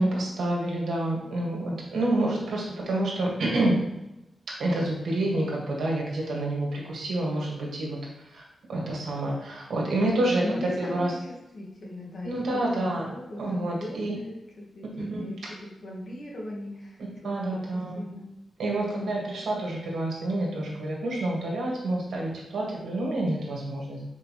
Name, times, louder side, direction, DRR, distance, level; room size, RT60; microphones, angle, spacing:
voice 1, 0.0-3.8 4.6-8.0 8.3-11.1 12.2-13.1 13.4-14.1 15.0-15.2 17.2-18.1 18.6-24.0, right 1 dB, 90° right, -3 dB, 1.9 m, -28 dB
voice 2, 10.4-11.2 11.5-18.2 18.7-19.1, left 1 dB, 50° left, -2 dB, 1.5 m, -39 dB
6.4 x 4.8 x 3.2 m, 0.92 s
wide cardioid pair, 165°, 0 cm